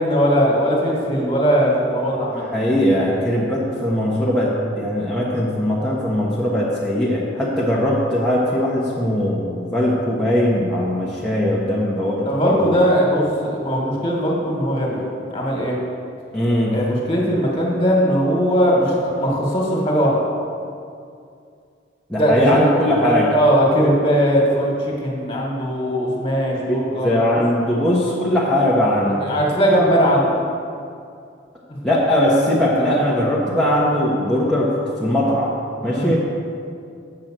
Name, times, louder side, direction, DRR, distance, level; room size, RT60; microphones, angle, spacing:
voice 1, 0.0-2.4 12.3-15.0 15.3-15.8 16.7-20.2 22.2-22.7 23.0-27.4 29.2-30.3 35.8-36.1, equal, 30° left, -2 dB, 1.8 m, -19 dB
voice 2, 2.4-12.7 16.3-16.7 22.1-23.3 26.7-29.2 31.8-35.5 35.8-36.2, left 1 dB, 5° left, -8 dB, 1.0 m, -20 dB
7.8 x 5.7 x 7.4 m, 2.4 s
head